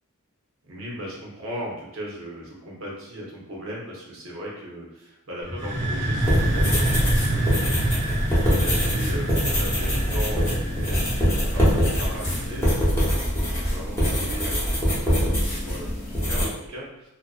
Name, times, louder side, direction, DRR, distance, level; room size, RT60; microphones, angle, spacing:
voice 1, 0.6-17.1, equal, 70° right, -4 dB, 0.8 m, -38 dB
sound 1, 5.4-13.1, right 1 dB, 20° right, 0.7 m, -27 dB
sound 2, 6.2-16.5, equal, 10° left, 0.7 m, -24 dB
2.4 x 2.2 x 2.3 m, 0.88 s
head